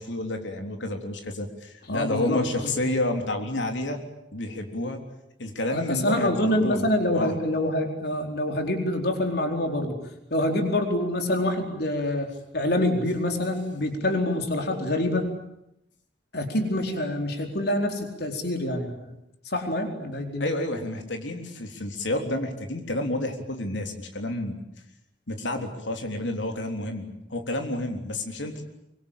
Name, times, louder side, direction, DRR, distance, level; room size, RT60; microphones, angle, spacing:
voice 1, 0.0-4.0 4.3-5.0 5.4-6.9 7.1-7.4 20.4-24.6 25.3-28.6, left 1 dB, 85° left, 4 dB, 3.6 m, -30 dB
voice 2, 1.9-2.4 5.7-10.0 10.3-15.3 16.3-18.9 19.5-20.5, left 1 dB, 60° left, 4 dB, 4.4 m, -26 dB
24.5 x 24.0 x 8.9 m, 0.84 s
head